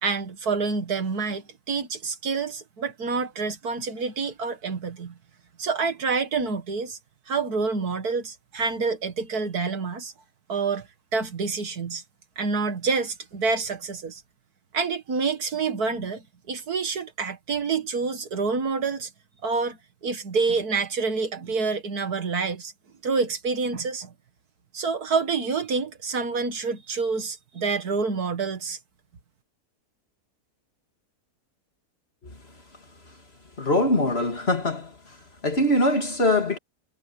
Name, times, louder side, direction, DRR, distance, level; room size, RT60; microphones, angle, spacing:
voice 1, 0.0-5.1 5.6-7.0 7.3-10.1 10.5-10.9 11.1-12.0 12.4-14.2 14.7-19.1 19.4-22.7 23.0-24.1 24.7-28.8, right 4 dB, 65° right, 2.2 m, -27 dB
voice 2, 33.6-35.2 35.4-36.6, left 1 dB, 35° left, 2.9 m, -23 dB
omnidirectional pair, 1.7 m